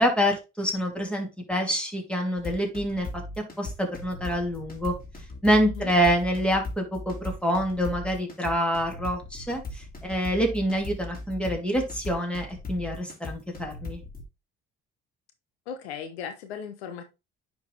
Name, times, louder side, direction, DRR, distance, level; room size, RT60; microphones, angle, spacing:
voice 1, 0.0-3.1 3.4-4.9 5.4-14.0, equal, 5° left, 2.9 m, -26 dB
sound 1, 2.4-14.2, left 2 dB, 30° left, 2.8 m, -38 dB
voice 2, 15.7-17.0, left 7 dB, 85° left, 1.0 m, -37 dB
9.7 x 4.0 x 3.3 m
hypercardioid pair, 55°, 32 cm